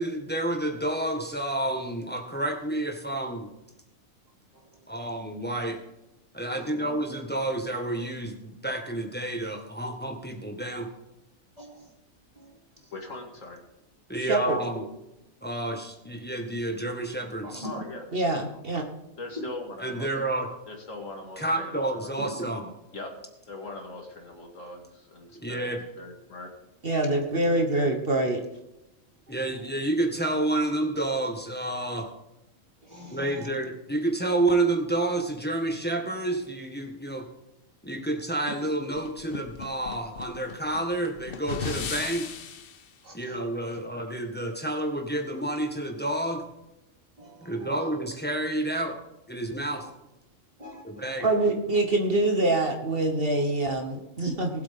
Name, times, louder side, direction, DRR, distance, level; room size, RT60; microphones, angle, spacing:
voice 1, 0.0-3.5 4.9-5.8 6.3-10.9 14.1-14.8 15.4-17.6 19.8-20.5 21.4-22.6 25.4-25.8 29.3-32.1 33.1-37.2 37.8-42.3 43.1-46.4 47.4-49.0 49.3-49.8 50.8-51.3, right 2 dB, 10° left, 2 dB, 1.6 m, -29 dB
voice 2, 6.5-7.0 11.6-11.9 12.3-12.9 14.5-14.7 17.4-17.7 19.4-19.5 22.2-22.3 29.3-29.7 32.8-33.6 43.0-43.4 43.7-43.8 47.2-48.0 49.7-49.9 50.6-51.6, equal, 30° right, -2 dB, 2.9 m, -43 dB
voice 3, 12.9-13.6 17.6-18.0 18.5-18.6 19.2-20.1 20.7-22.1 22.9-23.2 23.5-26.5, left 2 dB, 70° left, 2 dB, 2.5 m, -41 dB
voice 4, 14.2-14.6 18.1-18.9 26.8-28.4 51.2-54.5, right 2 dB, 45° right, 4 dB, 1.4 m, -25 dB
sound 1, 39.0-42.8, left 6 dB, 50° left, 0.9 m, -37 dB
20.0 x 8.2 x 3.7 m, 0.91 s
omnidirectional pair, 1.4 m